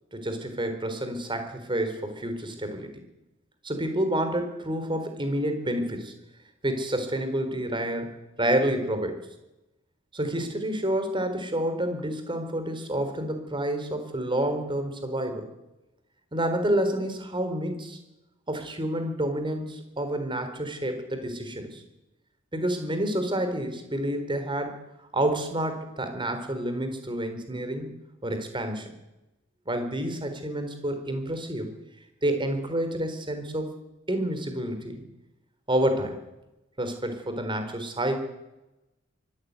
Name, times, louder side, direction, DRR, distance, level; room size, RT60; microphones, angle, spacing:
voice 1, 0.1-2.9 3.6-6.1 6.6-8.1 8.4-9.2 10.1-15.5 16.3-18.0 18.5-21.8 22.5-24.8 25.1-27.9 28.2-28.9 29.7-31.7 32.2-33.7 34.1-35.0 35.7-36.2 36.8-38.1, right 1 dB, 25° right, 7 dB, 4.0 m, -29 dB
24.0 x 14.0 x 9.6 m, 0.96 s
head